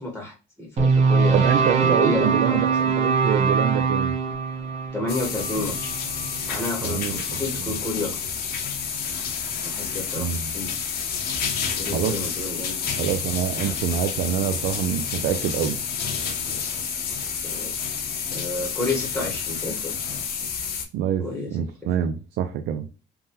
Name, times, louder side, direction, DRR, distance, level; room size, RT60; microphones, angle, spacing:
voice 1, 0.0-2.8 4.9-6.0 6.5-8.2 9.6-10.7 11.8-12.8 13.5-13.8 16.4-17.0 17.4-17.7 18.3-19.9 21.2-21.6, left 2 dB, 5° left, 0.9 m, -31 dB
sound 1, 0.8-7.0, right 5 dB, 40° right, 1.0 m, -23 dB
voice 2, 1.3-4.2 6.8-7.8 10.2-10.5 11.9-12.2 13.0-15.8 20.9-22.9, right 9 dB, 75° right, 0.4 m, -26 dB
sound 2, 5.1-20.8, left 6 dB, 65° left, 0.8 m, -29 dB
3.5 x 2.2 x 2.7 m
cardioid pair, 110°, 17 cm